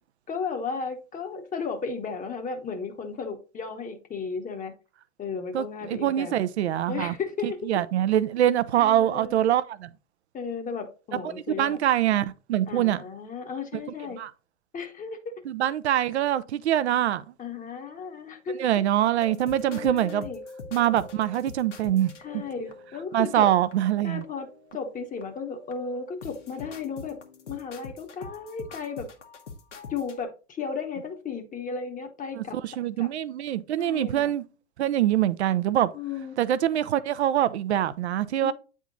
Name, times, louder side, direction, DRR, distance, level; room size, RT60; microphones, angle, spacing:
voice 1, 0.3-4.7 5.2-6.3 6.9-7.6 8.8-9.4 10.3-11.8 12.7-14.2 14.7-15.3 17.4-18.7 19.7-20.4 22.2-23.5 24.0-24.5 24.7-27.2 27.5-29.1 29.9-32.6 33.0-33.1 33.8-34.3 35.9-36.4 38.4-38.5, left 5 dB, 20° left, 1.1 m, -34 dB
voice 2, 5.5-7.2 7.4-9.9 11.2-13.0 13.7-13.8 14.2-14.3 15.5-17.2 18.6-20.3 20.7-22.1 23.1-24.2 32.4-34.4 34.8-35.9 36.4-38.5, right 12 dB, 65° right, 0.7 m, -24 dB
sound 1, 19.2-23.2 23.7-23.8 24.2-24.9 25.2-30.2, left 4 dB, 80° left, 1.4 m, -43 dB
9.0 x 3.7 x 3.8 m
figure-of-eight pair, 95°, 36 cm